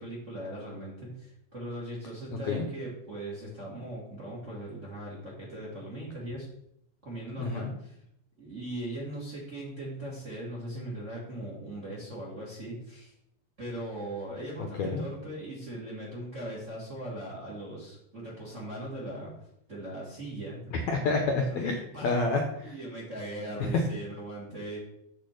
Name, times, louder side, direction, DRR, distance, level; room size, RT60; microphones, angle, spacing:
voice 1, 0.0-6.5 7.0-8.0 8.4-13.1 13.6-19.3 19.7-20.8 21.5-21.6 21.9-22.2 22.6-24.8, right 1 dB, 30° right, -5 dB, 1.6 m, -39 dB
voice 2, 7.4-7.7 14.8-15.0 20.7-21.7 22.0-22.8 23.6-23.7, left 3 dB, 75° left, 2 dB, 1.7 m, -28 dB
7.4 x 4.2 x 6.5 m, 0.74 s
omnidirectional pair, 4.1 m